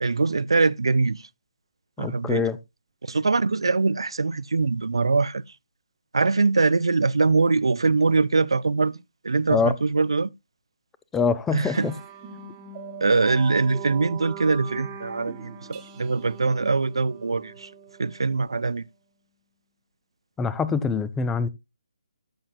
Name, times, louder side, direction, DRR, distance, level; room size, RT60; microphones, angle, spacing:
voice 1, 0.0-1.3 2.0-2.5 3.0-5.4 6.1-10.3 11.5-11.9 13.0-17.7 18.0-18.8, right 4 dB, 65° right, 0.5 m, -23 dB
voice 2, 2.0-2.6 9.5-9.7 11.1-11.9 20.4-21.5, left 5 dB, 10° left, 0.5 m, -24 dB
sound 1, 11.7-18.6, right 6 dB, 20° right, 1.2 m, -41 dB
14.0 x 6.4 x 2.4 m
figure-of-eight pair, 145°, 3 cm